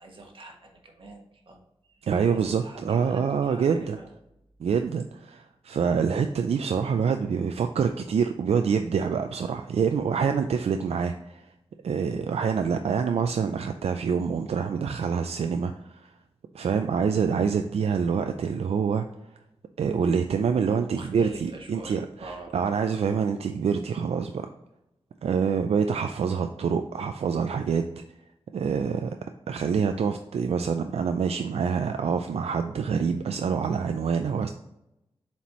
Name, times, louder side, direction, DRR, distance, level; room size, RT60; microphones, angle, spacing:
voice 1, 0.0-4.1 20.9-22.5, right 2 dB, 55° right, 1 dB, 1.4 m, -44 dB
voice 2, 2.0-4.0 4.6-11.5 11.8-16.1 16.5-19.1 19.8-24.5 25.2-27.8 28.5-29.2 29.5-34.5, right 6 dB, 85° right, 7 dB, 0.4 m, -26 dB
7.1 x 4.4 x 3.1 m, 0.85 s
wide cardioid pair, 125°, 10 cm